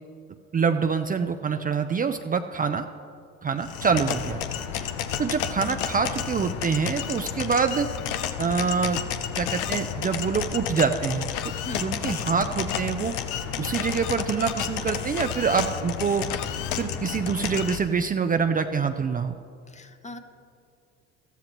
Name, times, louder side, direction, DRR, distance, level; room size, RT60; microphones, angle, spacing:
voice 1, 0.5-2.8 3.4-4.4 5.2-7.9 8.4-9.0 9.4-11.3 11.7-13.1 13.6-16.3 16.8-19.3, right 6 dB, 30° right, 7 dB, 0.5 m, -25 dB
sound 1, 3.6-17.8, left 9 dB, 85° left, 0.7 m, -31 dB
sound 2, 15.2-17.7, left 4 dB, 65° left, 1.8 m, -47 dB
voice 2, 19.7-20.2, left 2 dB, 20° left, 8 dB, 0.9 m, -39 dB
14.0 x 13.5 x 3.0 m, 2.4 s
supercardioid pair, 75°, 31 cm